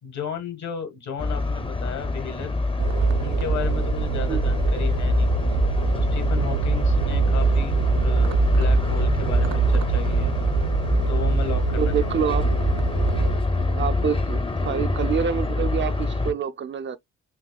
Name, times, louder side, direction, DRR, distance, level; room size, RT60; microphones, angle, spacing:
voice 1, 0.0-2.5 3.2-5.3 5.9-10.3 11.1-12.2, left 7 dB, 65° left, 1.5 m, -34 dB
sound 1, 1.2-16.3, left 2 dB, 20° left, 0.6 m, -25 dB
sound 2, 2.8-13.4, right 6 dB, 85° right, 0.6 m, -24 dB
voice 2, 11.8-12.5 13.7-17.0, right 7 dB, 40° right, 0.4 m, -27 dB
5.8 x 2.2 x 2.2 m
cardioid pair, 90°, 30 cm